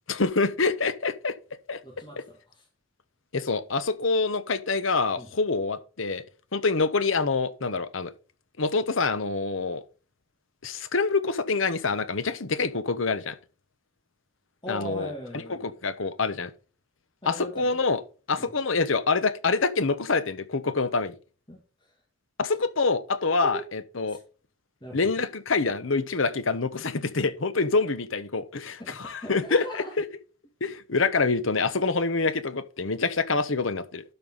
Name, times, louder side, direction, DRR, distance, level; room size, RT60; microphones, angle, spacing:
voice 1, 0.1-1.3 1.7-1.8 2.2-2.3 3.3-6.2 6.5-8.1 8.6-9.8 10.6-13.4 14.7-15.1 15.6-16.5 17.3-18.0 18.3-21.2 22.4-24.2 24.9-30.0 30.6-34.0, left 4 dB, 75° left, 1.0 m, -26 dB
voice 2, 1.8-2.6 5.2-5.3 14.6-15.7 17.2-17.7 18.4-18.5 21.5-21.9 23.4-23.6 24.1-24.2 24.8-25.1 28.8-29.9, equal, 25° left, 2.2 m, -39 dB
12.0 x 5.4 x 4.0 m
head